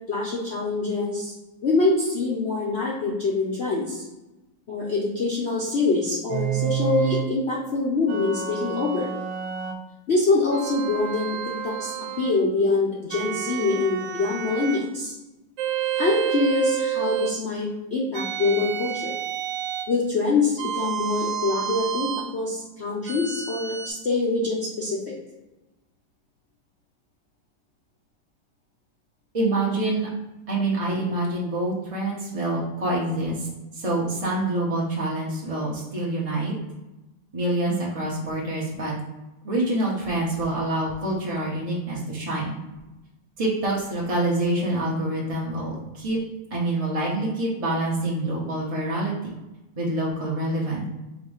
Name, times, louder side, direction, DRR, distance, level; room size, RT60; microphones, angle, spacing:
voice 1, 0.1-1.3 1.6-4.0 4.7-9.1 10.1-11.4 11.6-15.1 16.0-19.1 19.9-25.1, left 3 dB, 75° left, -5 dB, 0.6 m, -25 dB
sound 1, 6.3-7.3 8.1-9.8 10.5-12.4 13.1-14.9 15.6-17.4 18.1-19.9 20.6-22.3 23.1-23.9, right 11 dB, 75° right, 1.3 m, -29 dB
voice 2, 29.3-30.1 30.5-33.5 33.7-36.5 37.3-39.0 39.4-42.6 43.4-46.2 46.5-49.3 49.8-50.9, right 1 dB, 60° right, -4 dB, 0.3 m, -26 dB
4.0 x 2.6 x 4.8 m, 1.0 s
omnidirectional pair, 2.2 m